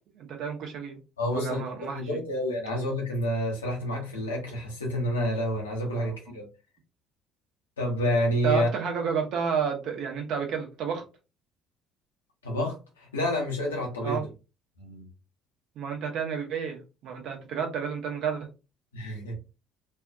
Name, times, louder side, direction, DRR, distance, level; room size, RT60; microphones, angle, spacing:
voice 1, 0.2-1.0 1.3-2.0 6.0-6.2 8.4-11.0 14.0-14.2 15.8-18.5, right 7 dB, 55° right, 0.7 m, -30 dB
voice 2, 1.2-6.5 7.8-8.7 12.4-14.2 14.8-15.1 18.9-19.5, equal, 80° left, 0.8 m, -29 dB
2.6 x 2.2 x 2.4 m
figure-of-eight pair, 55°, 0 cm